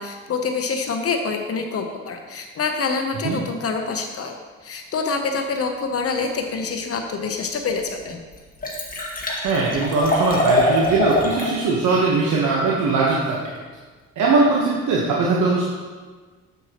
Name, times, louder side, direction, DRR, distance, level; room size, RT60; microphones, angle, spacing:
voice 1, 0.0-4.3 4.6-8.2, left 4 dB, 50° left, 4 dB, 0.8 m, -26 dB
Liquid, 7.5-7.6 8.0-8.1 8.3-11.5 11.9-12.0, left 1 dB, 30° left, 1.8 m, -24 dB
voice 2, 9.4-13.4 14.2-15.7, right 3 dB, 80° right, -4 dB, 1.2 m, -20 dB
8.1 x 7.1 x 3.0 m, 1.4 s
cardioid pair, 90°, 30 cm